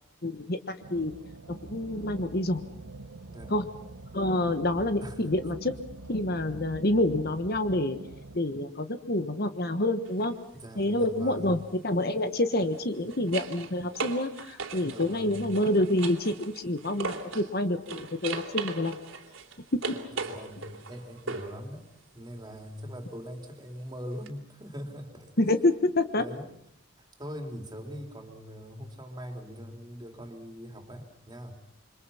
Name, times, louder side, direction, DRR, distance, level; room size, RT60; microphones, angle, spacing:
voice 1, 0.2-1.1 1.5-2.6 3.5-3.6 4.1-5.7 6.1-8.0 8.3-10.3 10.8-18.9 25.4-26.2, left 1 dB, 45° left, 9 dB, 1.3 m, -27 dB
sound 1, 0.8-8.4, right 2 dB, 90° right, 1.1 m, -45 dB
sound 2, 10.1-10.3 12.6-17.5 17.9-21.6 24.3-24.4, right 4 dB, 70° right, 3.1 m, -38 dB
voice 2, 10.5-11.6 14.8-15.5 19.9-21.9 22.1-25.5 26.2-26.5 27.0-31.6, equal, 20° right, 4 dB, 3.6 m, -42 dB
28.0 x 25.0 x 5.7 m, 0.71 s
head